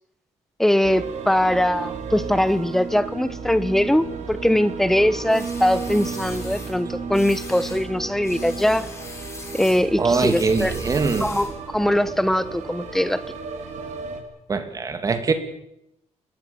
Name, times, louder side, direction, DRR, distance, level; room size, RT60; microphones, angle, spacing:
voice 1, 0.6-8.9 9.5-10.7 11.2-13.2, left 1 dB, 5° left, 15 dB, 0.9 m, -21 dB
sound 1, 0.8-14.2, right 5 dB, 80° right, 4.3 m, -33 dB
sound 2, 5.3-6.8 7.1-7.9 8.2-11.6, left 3 dB, 25° left, 4.8 m, -40 dB
voice 2, 10.0-11.3 14.5-15.3, right 4 dB, 30° right, 9 dB, 2.5 m, -22 dB
25.5 x 20.5 x 7.1 m, 0.82 s
wide cardioid pair, 175°, 12 cm